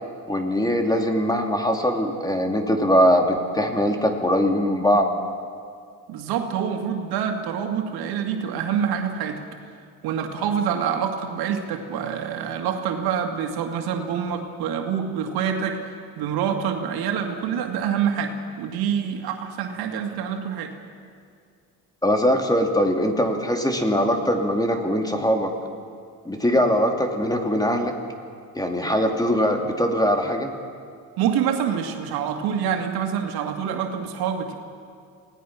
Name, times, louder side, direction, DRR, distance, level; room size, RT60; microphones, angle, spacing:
voice 1, 0.3-5.1 22.0-25.5 26.2-27.9 28.5-30.5, equal, 10° left, 3 dB, 2.8 m, -21 dB
voice 2, 6.1-9.4 10.0-20.7 31.2-34.5, right 8 dB, 85° right, 4 dB, 2.3 m, -26 dB
27.5 x 18.5 x 6.0 m, 2.2 s
cardioid pair, 80°, 36 cm